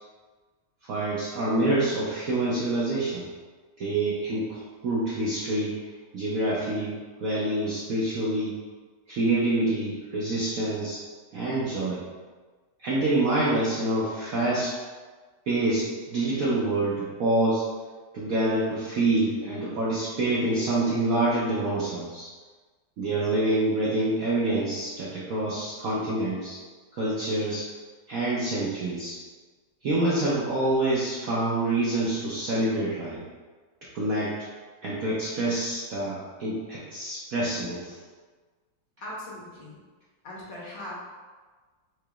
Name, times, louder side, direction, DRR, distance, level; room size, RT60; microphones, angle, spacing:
voice 1, 0.9-3.3 3.8-5.8 6.1-8.6 9.1-11.0 11.3-12.0 12.8-14.7 15.5-17.6 18.1-22.3 23.0-26.6 26.9-27.7 28.1-29.2 29.8-33.2 33.9-34.3 34.8-38.0, right 2 dB, 70° right, -7 dB, 0.8 m, -26 dB
voice 2, 39.0-39.8 40.2-41.0, left 1 dB, 70° left, -6 dB, 1.7 m, -39 dB
4.7 x 2.9 x 2.3 m, 1.4 s
omnidirectional pair, 2.1 m